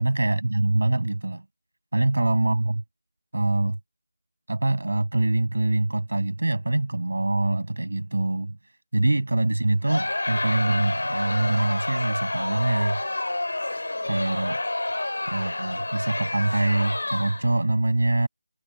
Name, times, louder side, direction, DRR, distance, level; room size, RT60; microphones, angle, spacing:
voice 1, 0.0-1.4 1.9-2.8 3.3-3.8 4.5-8.6 8.9-13.0 14.0-14.6 15.3-18.3, right 2 dB, 80° right, 6.5 m, -24 dB
Crowd, 9.9-17.6, left 2 dB, 85° left, 2.5 m, -29 dB
figure-of-eight pair, 170°, 0 cm